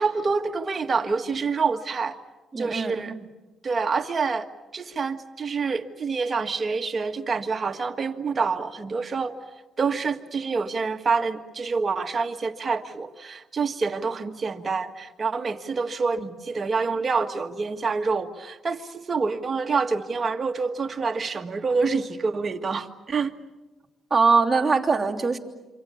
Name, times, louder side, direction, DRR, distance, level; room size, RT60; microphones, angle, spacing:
voice 1, 0.0-2.2 2.6-3.1 3.6-9.4 9.8-23.3, right 4 dB, 35° right, 5 dB, 1.7 m, -27 dB
voice 2, 2.5-3.0 24.1-25.4, right 4 dB, 20° right, -2 dB, 3.0 m, -21 dB
27.5 x 25.5 x 7.1 m, 1.1 s
cardioid pair, 90°, 0 cm